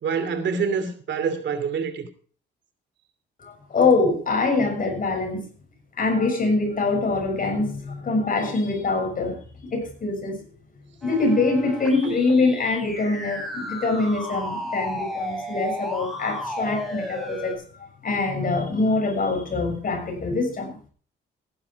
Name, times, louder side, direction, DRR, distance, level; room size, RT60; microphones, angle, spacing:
voice 1, 0.0-2.1 12.0-12.2, right 6 dB, 65° right, 2.8 m, -26 dB
voice 2, 3.4-5.5 6.0-9.4 9.7-10.4 11.0-17.5 18.0-20.7, left 3 dB, 45° left, 6.6 m, -24 dB
sound 1, 11.0-17.5, equal, ahead, 5.3 m, -33 dB
15.5 x 11.0 x 4.7 m
cardioid pair, 90°, 20 cm